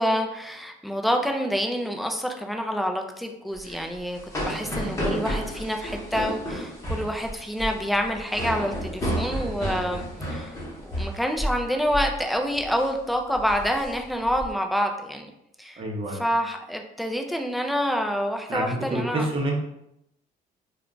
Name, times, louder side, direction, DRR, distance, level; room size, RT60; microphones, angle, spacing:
voice 1, 0.0-10.0 10.3-10.6 10.8-15.3 15.6-15.8 16.1-19.3, equal, ahead, 3 dB, 0.3 m, -27 dB
sound 1, 3.5-11.6 11.9-12.2 12.5-12.9 13.3-14.5, equal, 20° left, 1.0 m, -31 dB
voice 2, 15.8-16.2 18.5-19.5, right 1 dB, 30° right, 0 dB, 0.8 m, -28 dB
2.3 x 2.2 x 3.7 m, 0.81 s
cardioid pair, 110°, 17 cm